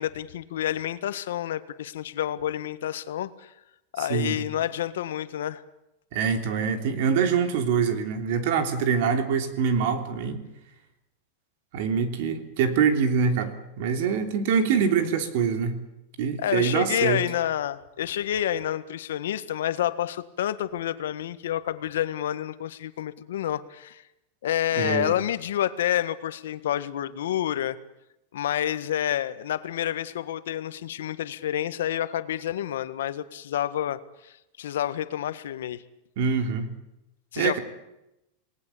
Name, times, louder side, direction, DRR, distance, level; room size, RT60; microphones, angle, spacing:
voice 1, 0.0-3.5 3.9-5.6 16.4-24.0 24.4-27.8 28.3-35.8 37.3-37.6, left 11 dB, 90° left, 13 dB, 1.6 m, -29 dB
voice 2, 6.1-10.4 11.7-15.8 16.2-17.2 24.8-25.2 36.2-36.7 37.4-37.6, right 6 dB, 50° right, 7 dB, 3.2 m, -24 dB
28.5 x 19.0 x 8.6 m, 0.90 s
supercardioid pair, 180°, 0 cm